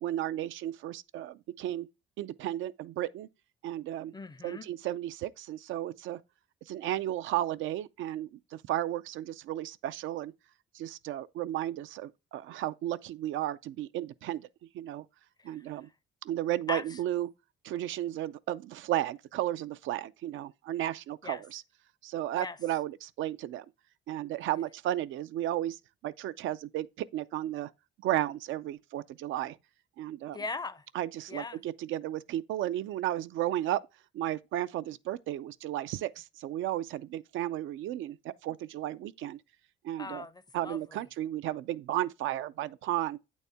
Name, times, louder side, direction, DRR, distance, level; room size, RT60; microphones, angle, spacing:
voice 1, 0.0-1.9 2.2-3.3 3.6-4.1 4.4-6.2 6.7-10.3 10.7-14.5 14.7-15.0 15.4-15.9 16.2-17.3 17.6-21.6 22.0-23.7 24.1-26.9 27.1-27.7 28.0-29.6 30.0-30.4 31.0-33.8 34.1-39.4 39.8-40.2 40.5-43.2, right 13 dB, 80° right, 0.4 m, -34 dB
voice 2, 4.1-4.7 15.4-15.9 16.7-17.0 21.2-21.4 22.3-22.6 30.3-30.9 31.3-31.6 40.0-41.1, left 3 dB, 20° left, 0.5 m, -40 dB
8.3 x 4.1 x 3.4 m
cardioid pair, 90°, 20 cm